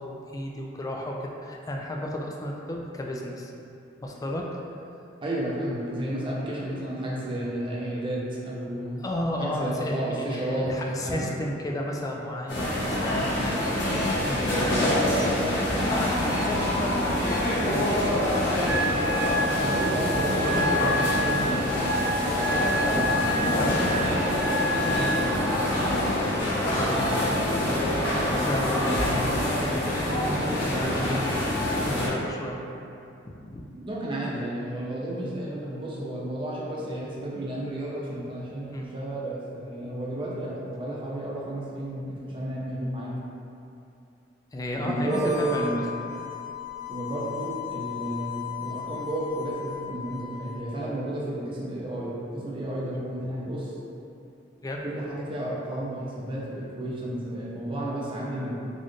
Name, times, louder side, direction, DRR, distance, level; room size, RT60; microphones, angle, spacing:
voice 1, 0.0-3.5 4.0-4.6 9.0-15.0 15.9-18.2 22.4-25.6 26.0-27.4 28.3-31.4 31.8-32.6 33.2-33.7 38.7-38.9 44.5-45.8 52.9-53.0 54.6-54.9, left 1 dB, 20° left, 0 dB, 0.3 m, -33 dB
voice 2, 5.2-9.0 9.4-10.7 11.0-11.2 19.5-21.7 22.9-23.1 33.8-43.2 44.8-45.9 46.9-53.7 54.8-58.5, right 1 dB, 25° right, -5 dB, 0.6 m, -32 dB
sound 1, 12.5-32.1, left 1 dB, 70° left, 0.9 m, -25 dB
Wind instrument woodwind instrument, 18.6-25.2, equal, 80° right, 0.3 m, -29 dB
Harmonica, 45.0-50.6, left 9 dB, 40° left, 1.0 m, -37 dB
4.1 x 2.5 x 3.1 m, 2.7 s
head